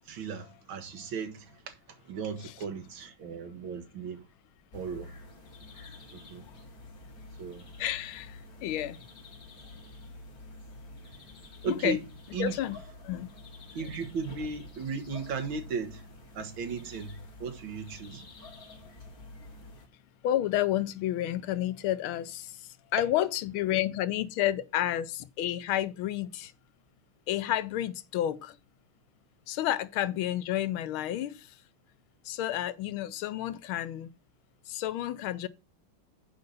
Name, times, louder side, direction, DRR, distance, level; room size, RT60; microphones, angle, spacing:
voice 1, 0.1-1.8 2.1-4.3 4.7-5.1 6.1-6.4 7.4-7.7 11.6-12.0 12.3-12.6 13.8-16.0 16.4-18.3, right 5 dB, 75° right, 2.1 m, -36 dB
sound 1, 4.7-19.9, left 2 dB, 50° left, 2.6 m, -48 dB
voice 2, 7.8-9.0 11.6-12.0 12.4-12.8 13.0-13.3 20.2-22.5 22.9-26.5 27.3-28.6 29.5-31.5 32.2-34.1 34.7-35.5, left 12 dB, 90° left, 1.5 m, -30 dB
8.0 x 5.3 x 5.6 m
omnidirectional pair, 2.2 m